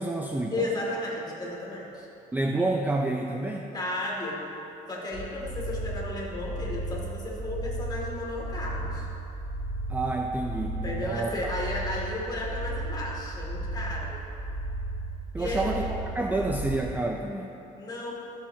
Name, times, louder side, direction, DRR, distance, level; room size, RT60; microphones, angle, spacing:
voice 1, 0.0-0.7 2.3-3.7 9.9-11.5 15.3-17.6, right 2 dB, 10° right, 2 dB, 0.4 m, -29 dB
voice 2, 0.5-2.1 3.7-4.4 4.9-9.1 10.8-14.2 15.4-15.7 17.7-18.2, left 2 dB, 25° left, -4 dB, 2.2 m, -34 dB
sound 1, 5.1-16.8, right 2 dB, 50° right, 1.9 m, -34 dB
13.5 x 7.4 x 2.7 m, 2.9 s
cardioid pair, 110°, 17 cm